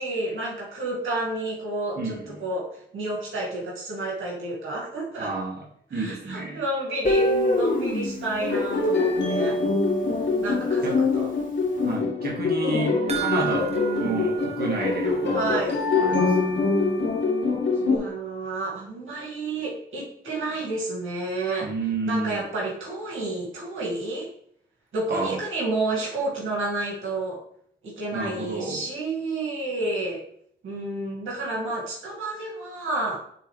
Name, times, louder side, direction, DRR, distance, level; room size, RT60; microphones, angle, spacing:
voice 1, 0.0-2.7 2.9-5.3 5.9-9.7 10.4-11.3 12.7-13.3 13.7-14.3 15.3-15.8 17.8-21.7 22.1-24.3 24.9-27.4 27.8-30.2 30.6-33.2, right 2 dB, 80° right, -4 dB, 2.2 m, -30 dB
voice 2, 2.0-2.4 5.2-5.5 5.9-6.6 10.8-11.0 11.8-15.6 16.0-16.6 21.6-22.4 25.1-25.4 28.1-28.9, right 3 dB, 50° right, -2 dB, 1.9 m, -30 dB
Guitar, 7.0-10.0, left 1 dB, 45° left, 1.9 m, -26 dB
sound 1, 8.4-18.0, left 3 dB, 65° left, 1.7 m, -24 dB
sound 2, 13.1-15.6 15.9-16.0 16.5-16.6, right 12 dB, 30° right, 1.0 m, -34 dB
9.0 x 3.9 x 3.3 m, 0.67 s
cardioid pair, 60°, 20 cm